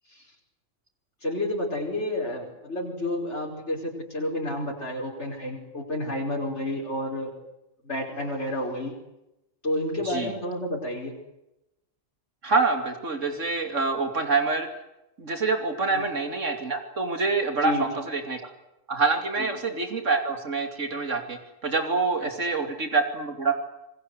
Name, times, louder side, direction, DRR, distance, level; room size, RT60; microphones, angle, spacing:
voice 1, 1.2-7.3 7.8-8.9 9.6-11.1 15.9-16.0 17.6-17.8 19.4-19.5 22.2-22.3, left 1 dB, 60° left, -1 dB, 5.4 m, -30 dB
voice 2, 12.4-14.7 15.2-18.5 18.9-23.5, right 4 dB, 75° right, 6 dB, 3.1 m, -26 dB
27.5 x 21.0 x 8.1 m, 0.92 s
omnidirectional pair, 1.3 m